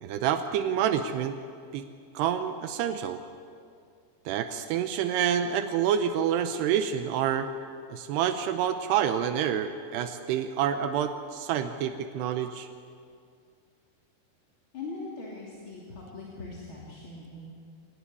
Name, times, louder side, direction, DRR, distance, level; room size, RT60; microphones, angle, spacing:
voice 1, 0.0-1.4 1.7-1.9 2.1-3.2 4.3-7.5 7.9-12.7, right 9 dB, 85° right, 8 dB, 2.9 m, -28 dB
voice 2, 14.7-17.5, left 3 dB, 35° left, -4 dB, 3.2 m, -41 dB
25.5 x 18.5 x 9.8 m, 2.3 s
omnidirectional pair, 4.8 m